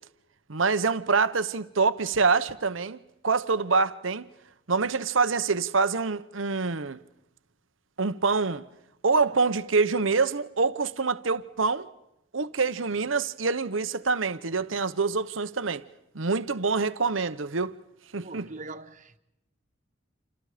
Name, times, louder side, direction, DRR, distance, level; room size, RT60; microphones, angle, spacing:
voice 1, 0.5-3.0 3.2-4.3 4.7-7.0 8.0-8.6 9.0-11.9 12.3-15.8 16.1-17.8 18.1-18.5, right 4 dB, 85° right, 1.0 m, -25 dB
voice 2, 18.2-19.2, right 2 dB, 40° right, 1.5 m, -41 dB
29.0 x 28.0 x 5.1 m
head